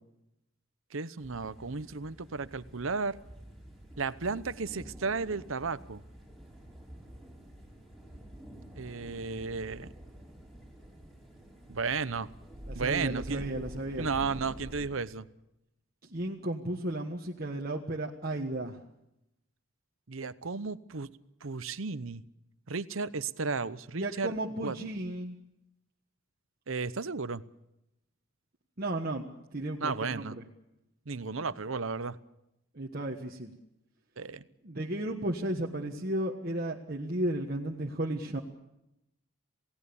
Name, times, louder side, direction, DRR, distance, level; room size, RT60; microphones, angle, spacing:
voice 1, 0.9-3.2 4.0-6.0 8.8-9.9 11.7-12.3 12.7-13.4 14.0-15.3 20.1-21.1 21.4-22.2 22.7-24.3 24.6-24.8 26.7-27.4 29.8-30.4 31.1-32.2 34.2-34.4, right 4 dB, 70° right, 15 dB, 0.9 m, -34 dB
sound 1, 1.2-14.9, equal, ahead, 5.7 m, -48 dB
voice 2, 12.7-14.1 16.0-18.8 24.0-25.4 28.8-29.3 29.5-30.4 32.7-33.5 34.6-38.4, right 1 dB, 45° right, -1 dB, 1.4 m, -34 dB
28.5 x 17.5 x 7.1 m, 0.87 s
head